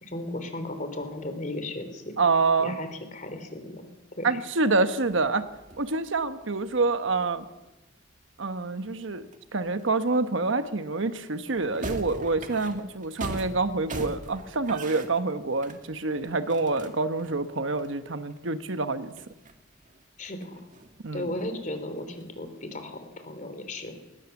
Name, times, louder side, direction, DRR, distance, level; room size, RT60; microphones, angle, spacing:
voice 1, 0.0-2.1 2.6-3.9 4.2-4.4 20.2-20.6 21.1-23.9, left 1 dB, 40° left, 8 dB, 3.3 m, -35 dB
voice 2, 2.2-2.8 4.2-5.4 5.8-7.4 8.4-19.1 21.0-21.3, right 3 dB, 75° right, 10 dB, 1.2 m, -27 dB
sound 1, 5.0-10.4 11.0-11.1 11.4-18.4 18.8-18.9 19.1-21.2 21.6-22.5, right 2 dB, 40° right, 2.0 m, -43 dB
20.0 x 19.5 x 7.1 m, 1.0 s
head